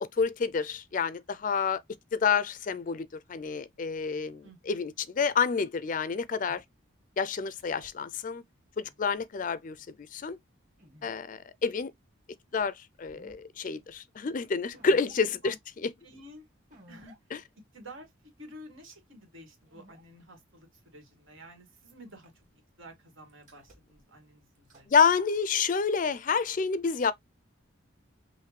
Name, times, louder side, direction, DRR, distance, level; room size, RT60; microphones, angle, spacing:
voice 1, 0.0-1.8 2.1-6.6 7.2-8.4 8.8-9.8 10.1-10.4 11.0-11.9 12.5-12.7 13.0-15.5 17.3-17.4 24.9-27.1, left 5 dB, 40° left, 0.4 m, -28 dB
voice 2, 4.4-4.8 15.4-15.6 16.0-16.5 16.9-17.2 17.7-18.1 18.4-22.4 22.8-24.9, equal, 80° right, 2.0 m, -50 dB
sound 1, 6.5-6.6 7.6-7.9 8.8-9.2 10.8-11.2 12.5-12.6 13.0-13.4 13.9-14.0 14.7-15.2 16.7-17.2 17.7-17.8 19.7-20.0 21.7-22.5 23.3-24.0 24.5-25.0, right 1 dB, 40° right, 2.1 m, -55 dB
5.7 x 2.6 x 3.2 m
head